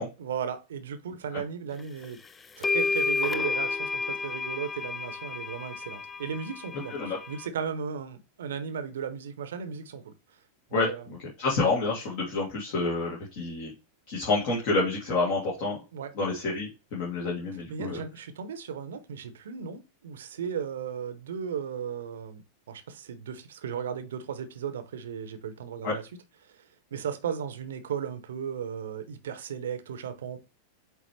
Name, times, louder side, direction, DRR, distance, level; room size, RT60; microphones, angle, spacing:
voice 1, 0.2-2.2 2.6-10.1 10.7-11.0 15.9-16.1 17.7-26.0 26.9-30.4, right 7 dB, 60° right, 0.9 m, -36 dB
sound 1, 2.0-2.1 2.6-7.5, left 4 dB, 15° left, 0.4 m, -31 dB
voice 2, 10.7-13.7 14.1-15.8 16.1-18.0 25.8-26.0, left 3 dB, 45° left, 2.3 m, -28 dB
8.3 x 3.5 x 3.2 m
figure-of-eight pair, 90°, 0 cm